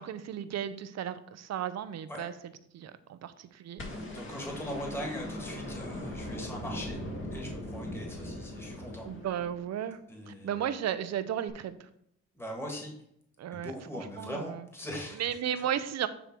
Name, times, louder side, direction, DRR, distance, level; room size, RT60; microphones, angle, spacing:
voice 1, 0.0-2.3 2.7-3.8 9.0-10.0 10.3-11.9 13.4-14.6 15.2-16.1, right 10 dB, 60° right, 12 dB, 0.7 m, -34 dB
sound 1, 3.8-10.0 11.5-11.6, left 1 dB, 40° left, 1.8 m, -40 dB
voice 2, 4.1-7.0 7.3-9.1 10.1-10.6 12.3-12.9 13.5-15.6, equal, 10° left, 0 dB, 1.8 m, -40 dB
9.0 x 3.3 x 4.6 m, 0.73 s
cardioid pair, 90°, 30 cm